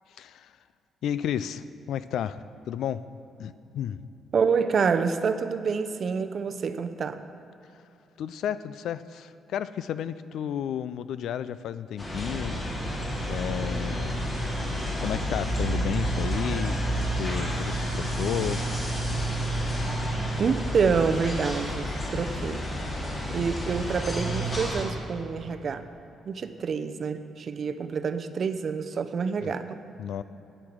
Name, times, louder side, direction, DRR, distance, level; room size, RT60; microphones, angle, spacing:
voice 1, 0.2-0.5 1.0-3.0 3.4-4.0 8.2-12.6 13.3-14.2 15.0-18.6 29.4-29.5 30.0-30.2, left 9 dB, 75° left, 15 dB, 0.3 m, -32 dB
voice 2, 4.3-7.2 20.4-22.6 23.3-25.8 26.2-29.8, right 5 dB, 50° right, 9 dB, 0.6 m, -27 dB
sound 1, 12.0-24.8, right 1 dB, 35° left, 2.5 m, -30 dB
9.0 x 8.4 x 6.2 m, 2.7 s
cardioid pair, 90°, 0 cm